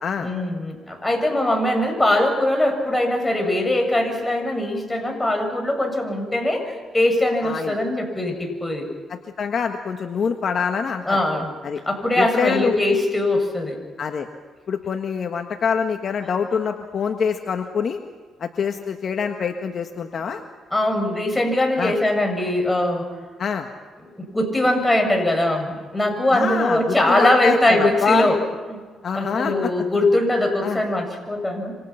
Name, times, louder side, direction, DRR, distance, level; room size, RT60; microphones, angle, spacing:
voice 1, 0.2-8.9 11.1-11.5 11.9-13.8 20.7-23.1 24.2-28.4 28.7-28.8 29.1-31.8, left 1 dB, 15° left, 3 dB, 7.1 m, -21 dB
voice 2, 7.4-7.8 9.1-11.2 11.6-11.8 12.2-12.7 14.0-14.3 14.7-18.0 18.4-20.4 21.8-21.9 23.4-23.7 26.3-28.3 29.0-29.7 30.6-30.8, left 6 dB, 55° left, 5 dB, 1.7 m, -25 dB
27.5 x 26.5 x 5.9 m, 1.5 s
cardioid pair, 90°, 0 cm